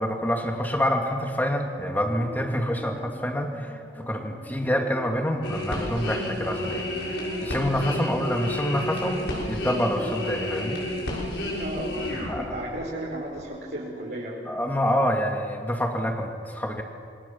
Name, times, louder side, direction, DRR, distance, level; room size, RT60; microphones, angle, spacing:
voice 1, 0.0-10.8 12.3-12.4 14.5-16.8, equal, 10° left, 2 dB, 2.6 m, -27 dB
sound 1, 1.6-14.9, equal, 10° right, 4.4 m, -45 dB
sound 2, 5.4-12.9 13.3-13.4, left 1 dB, 70° left, 6.8 m, -31 dB
voice 2, 11.6-14.4, right 1 dB, 65° right, -6 dB, 5.4 m, -34 dB
28.0 x 23.0 x 7.4 m, 2.2 s
head